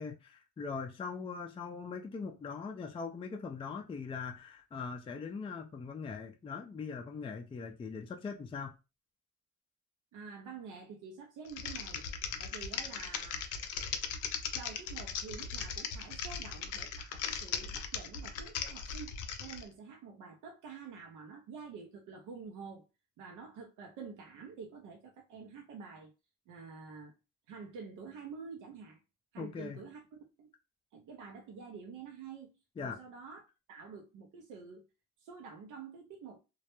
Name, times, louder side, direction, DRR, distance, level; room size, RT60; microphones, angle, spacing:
voice 1, 0.0-8.7 29.4-29.9 32.8-33.0, left 5 dB, 20° left, 0.3 m, -41 dB
voice 2, 10.1-12.0 12.4-13.5 14.5-22.8 23.2-26.1 26.5-27.2 27.5-29.0 29.3-30.0 30.4-30.5 30.9-33.4 33.7-34.9 35.2-36.4, right 5 dB, 80° right, 0.5 m, -48 dB
Typing, 11.5-19.6, left 7 dB, 80° left, 0.5 m, -38 dB
2.2 x 2.0 x 2.9 m
cardioid pair, 90°, 30 cm